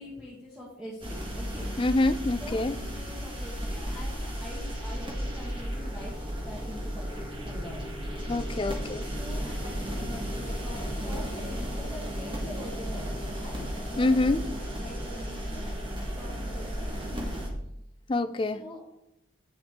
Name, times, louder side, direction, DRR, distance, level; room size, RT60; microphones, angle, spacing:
voice 1, 0.0-1.7 2.4-6.1 6.4-7.8 8.2-8.4 9.1-14.2 14.7-15.7 16.1-17.5 18.4-18.8, left 1 dB, 5° right, -7 dB, 1.8 m, -44 dB
sound 1, 1.0-17.5, equal, 25° right, 1.6 m, -34 dB
voice 2, 1.8-2.7 8.3-9.0 14.0-14.5 18.1-18.6, left 2 dB, 25° left, 10 dB, 0.4 m, -26 dB
8.6 x 7.3 x 3.7 m, 0.83 s
head